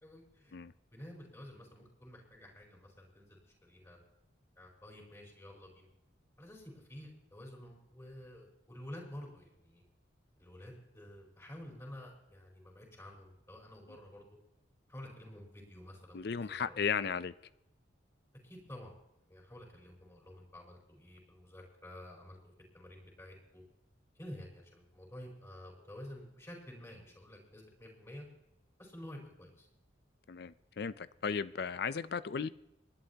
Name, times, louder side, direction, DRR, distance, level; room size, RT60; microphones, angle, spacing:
voice 1, 0.0-0.5 0.9-4.0 4.6-5.9 6.4-9.8 10.4-14.4 14.9-16.8 17.1-17.2 18.4-18.9 19.3-23.6 24.1-28.3 28.8-29.7, left 1 dB, 15° left, -2 dB, 4.7 m, -50 dB
voice 2, 16.1-17.3 30.3-32.5, left 6 dB, 55° left, 16 dB, 0.5 m, -35 dB
28.5 x 11.5 x 2.9 m, 0.88 s
head